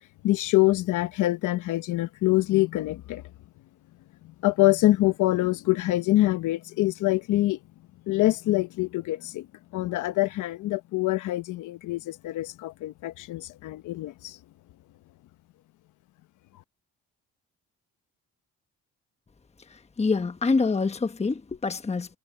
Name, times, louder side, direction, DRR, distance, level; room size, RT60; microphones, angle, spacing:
voice 1, 0.2-3.2 4.2-7.6 8.1-9.5 9.7-14.4, left 17 dB, 85° left, 1.0 m, -25 dB
voice 2, 19.7-22.2, left 4 dB, 20° left, 1.1 m, -26 dB
cardioid pair, 90°, 30 cm